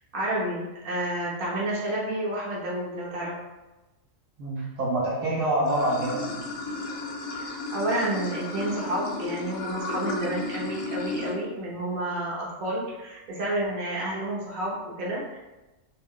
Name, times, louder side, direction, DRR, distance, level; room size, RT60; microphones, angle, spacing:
voice 1, 0.1-3.4 4.6-4.7 7.3-15.4, right 1 dB, 45° right, -5 dB, 0.9 m, -30 dB
voice 2, 4.4-6.4, right 1 dB, 70° right, -5 dB, 1.0 m, -26 dB
Water / Sink (filling or washing), 5.7-11.3, left 2 dB, 60° left, 0.7 m, -34 dB
2.5 x 2.2 x 3.6 m, 1.1 s
omnidirectional pair, 1.4 m